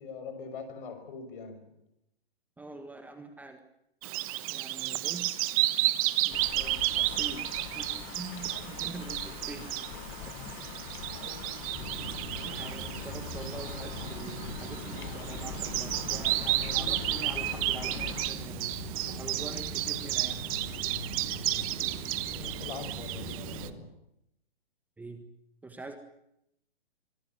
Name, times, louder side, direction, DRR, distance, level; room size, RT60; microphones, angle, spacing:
voice 1, 0.0-1.7 10.8-11.5 22.3-23.9, left 5 dB, 55° left, 6.0 m, -43 dB
voice 2, 2.6-3.6 4.5-5.5 6.2-9.8 10.2-10.8 12.1-18.8 19.0-20.5 25.0-25.3 25.6-26.0, right 2 dB, 5° right, 1.5 m, -45 dB
Bird vocalization bird call bird song, 4.0-23.7, right 16 dB, 35° right, 1.2 m, -32 dB
sound 1, 6.3-18.3, left 15 dB, 30° left, 1.2 m, -43 dB
sound 2, 11.7-23.7, left 1 dB, 15° left, 7.1 m, -42 dB
25.0 x 17.5 x 9.5 m
hypercardioid pair, 145°, 31 cm